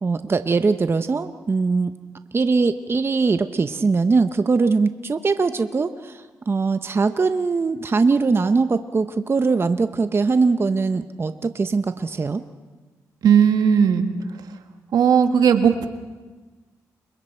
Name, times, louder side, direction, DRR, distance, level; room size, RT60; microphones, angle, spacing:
voice 1, 0.0-1.9 2.3-12.4, right 4 dB, 35° right, 10 dB, 0.8 m, -21 dB
voice 2, 13.2-14.1 14.9-15.9, right 7 dB, 80° right, 7 dB, 1.5 m, -16 dB
29.5 x 23.0 x 4.5 m, 1.3 s
cardioid pair, 70°, 7 cm